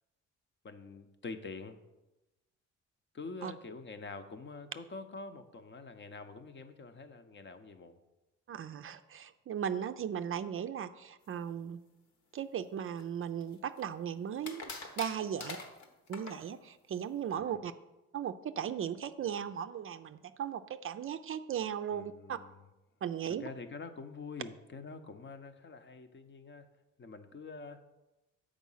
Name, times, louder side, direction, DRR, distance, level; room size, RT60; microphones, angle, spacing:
voice 1, 0.6-1.8 3.1-8.0 21.9-22.6 23.4-26.7 27.0-27.9, left 4 dB, 40° left, 8 dB, 0.8 m, -46 dB
voice 2, 8.5-11.8 12.3-14.6 15.0-15.6 16.1-17.7 18.1-22.4 23.0-23.5, right 8 dB, 45° right, 10 dB, 0.4 m, -37 dB
sound 1, 13.0-13.8 14.4-16.4, left 3 dB, 70° left, 1.3 m, -44 dB
7.2 x 5.0 x 5.6 m, 1.0 s
cardioid pair, 90°, 30 cm